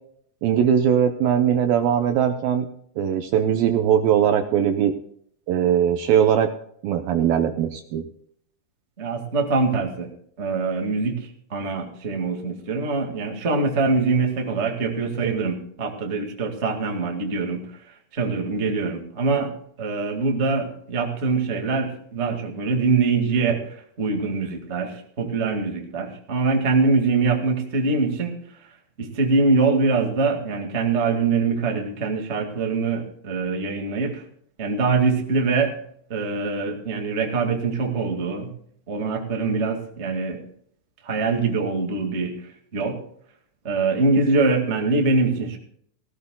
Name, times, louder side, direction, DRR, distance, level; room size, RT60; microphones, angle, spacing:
voice 1, 0.4-2.7 3.0-4.9 5.5-6.5 6.8-8.1, right 9 dB, 75° right, 7 dB, 2.2 m, -20 dB
voice 2, 9.0-10.1 10.4-19.5 19.8-28.7 29.0-34.2 34.6-35.8 36.1-38.5 38.9-40.4 41.0-42.4 42.7-43.0 43.6-45.6, right 4 dB, 50° right, 3 dB, 0.8 m, -23 dB
18.0 x 16.5 x 2.3 m, 0.65 s
omnidirectional pair, 4.9 m